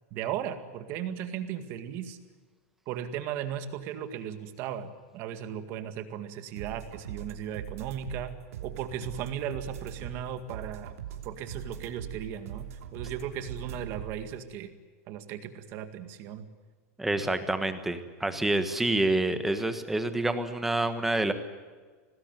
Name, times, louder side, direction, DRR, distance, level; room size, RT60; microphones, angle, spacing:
voice 1, 0.1-2.2 2.9-8.3 8.6-10.9 11.2-14.7 15.1-16.5, right 9 dB, 30° right, 9 dB, 2.0 m, -36 dB
sound 1, 6.6-14.3, right 10 dB, 65° right, 3.1 m, -41 dB
voice 2, 17.0-21.3, right 2 dB, 5° right, 9 dB, 1.4 m, -27 dB
25.5 x 19.5 x 9.1 m, 1.4 s
supercardioid pair, 180°, 8 cm